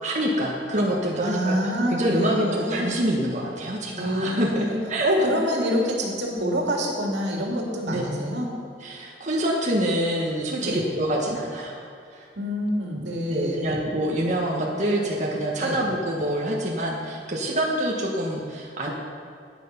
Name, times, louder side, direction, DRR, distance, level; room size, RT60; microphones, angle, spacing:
voice 1, 0.0-1.6 1.9-5.1 7.9-8.0 8.8-11.8 12.1-12.2 13.3-18.9, right 1 dB, 45° right, -2 dB, 1.4 m, -26 dB
voice 2, 1.2-2.8 3.9-4.8 5.0-8.5 10.6-10.8 12.4-13.8 15.6-15.8, equal, 85° right, -1 dB, 2.4 m, -26 dB
11.5 x 9.4 x 5.8 m, 2.4 s
head